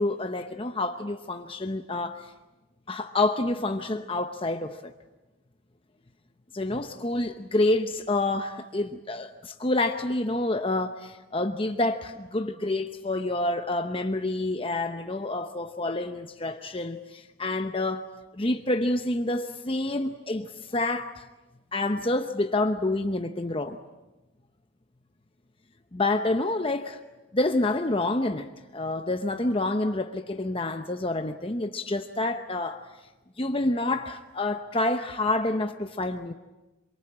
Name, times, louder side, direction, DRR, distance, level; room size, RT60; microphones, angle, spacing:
voice 1, 0.0-2.3 2.9-4.9 6.5-18.1 18.4-21.3 21.7-23.8 25.9-27.0 27.3-32.8 33.4-36.3, left 2 dB, 25° left, 0.8 m, -28 dB
27.5 x 23.0 x 8.8 m
head